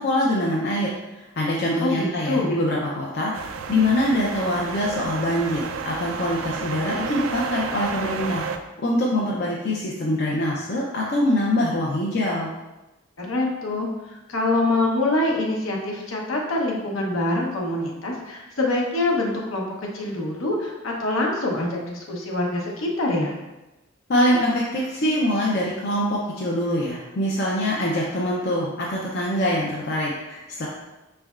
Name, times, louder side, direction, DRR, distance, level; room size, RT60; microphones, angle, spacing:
voice 1, 0.0-3.3 3.7-8.4 8.8-12.5 24.1-30.7, left 1 dB, 50° left, -4 dB, 0.5 m, -24 dB
voice 2, 1.8-2.6 13.2-19.7 19.9-23.3, left 2 dB, 75° left, -1 dB, 0.9 m, -25 dB
sound 1, 3.3-8.6, right 6 dB, 75° right, 0.3 m, -31 dB
5.2 x 3.3 x 2.4 m, 1.0 s
head